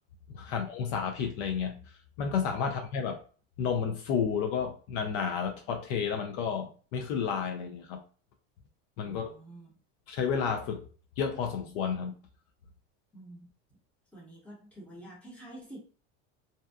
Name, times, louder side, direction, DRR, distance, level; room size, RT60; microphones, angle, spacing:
voice 1, 0.3-1.8 2.2-3.2 3.6-8.0 9.0-9.3 10.1-10.9 11.2-12.1, left 6 dB, 60° left, 0.5 m, -31 dB
voice 2, 9.0-9.8 13.1-13.5 14.1-15.8, right 1 dB, 5° left, 0.9 m, -48 dB
2.7 x 2.2 x 2.3 m
cardioid pair, 155°, 34 cm